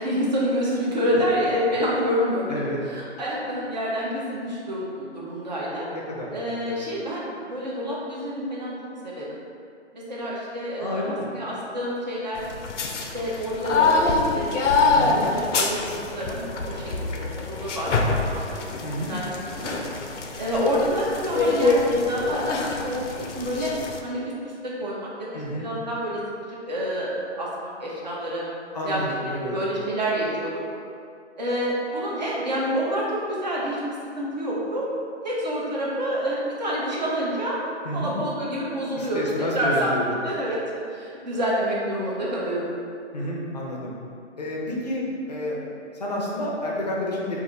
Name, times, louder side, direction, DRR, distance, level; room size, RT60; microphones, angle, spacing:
voice 1, 0.0-5.9 6.3-8.7 9.0-9.4 9.9-12.4 13.1-18.6 19.1-19.8 20.4-22.4 22.8-23.7 24.0-26.2 26.5-28.4 28.8-29.0 29.4-30.5 31.4-33.8 34.1-34.9 35.2-37.6 37.9-39.9 40.2-40.6 40.9-42.6, equal, 40° right, -6 dB, 0.7 m, -28 dB
voice 2, 2.5-2.8 5.9-6.3 6.6-6.8 10.8-11.3 14.9-15.2 18.8-19.1 25.3-25.7 28.7-29.6 37.8-38.2 39.0-40.2 43.1-43.9 44.4-45.6 45.9-47.4, left 1 dB, 35° left, -4 dB, 0.5 m, -30 dB
sound 1, 12.4-24.0, left 3 dB, 85° left, 0.5 m, -25 dB
2.5 x 2.5 x 4.0 m, 2.4 s
hypercardioid pair, 165°, 36 cm